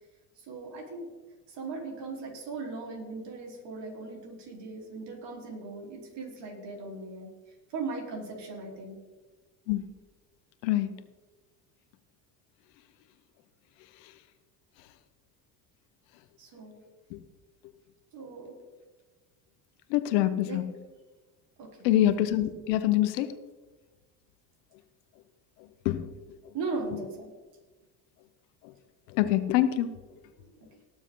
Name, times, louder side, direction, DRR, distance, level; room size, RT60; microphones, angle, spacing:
voice 1, 0.4-1.1 1.5-9.0 16.4-16.8 18.1-18.6 20.5-20.6 21.6-21.9 26.5-27.3 30.4-30.8, right 3 dB, 60° right, -1 dB, 4.3 m, -38 dB
voice 2, 19.9-20.6 21.8-23.3 25.8-26.0 29.2-29.9, left 13 dB, 80° left, 11 dB, 1.1 m, -25 dB
19.0 x 7.3 x 4.0 m, 1.2 s
hypercardioid pair, 75°, 49 cm